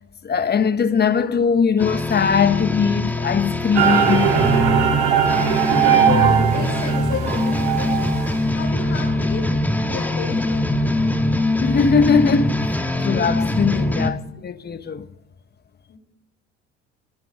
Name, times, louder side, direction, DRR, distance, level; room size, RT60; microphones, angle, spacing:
voice 1, 0.2-4.3 11.6-15.1, left 6 dB, 30° left, 1.3 m, -20 dB
voice 2, 0.8-1.5 5.8-8.1 8.5-9.4 9.8-11.0 13.1-13.9 15.9-16.0, left 5 dB, 55° left, 5.2 m, -33 dB
sound 1, 1.8-14.1, left 1 dB, 5° left, 1.8 m, -23 dB
sound 2, 3.7-8.3, right 8 dB, 85° right, 2.5 m, -19 dB
28.0 x 10.5 x 3.9 m
hypercardioid pair, 65°, 32 cm